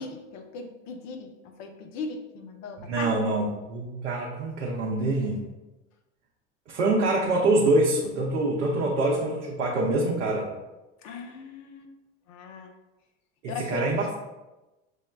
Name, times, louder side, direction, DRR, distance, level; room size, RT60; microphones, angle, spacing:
voice 1, 0.0-3.2 11.0-11.9 12.3-12.7 13.5-13.8, left 4 dB, 50° left, 5 dB, 0.7 m, -38 dB
voice 2, 2.8-5.5 6.7-10.5 13.4-14.2, right 2 dB, 80° right, -3 dB, 0.7 m, -25 dB
6.2 x 2.1 x 2.3 m, 1.0 s
hypercardioid pair, 80°, 36 cm